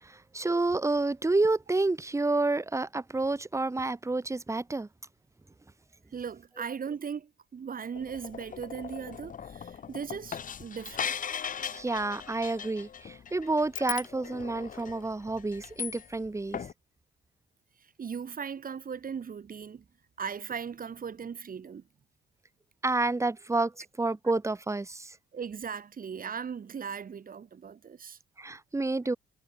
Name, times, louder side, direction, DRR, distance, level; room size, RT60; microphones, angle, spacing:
voice 1, 0.0-4.9 11.7-16.7 22.8-23.7 24.0-25.2 28.4-29.2, right 2 dB, 15° right, 1.2 m, -29 dB
voice 2, 6.1-11.1 18.0-19.8 20.2-21.8 25.3-28.2, right 6 dB, 45° right, 3.9 m, -38 dB
sound 1, 7.9-16.3 16.5-16.7, left 7 dB, 40° left, 0.9 m, -39 dB
cardioid pair, 90°, 20 cm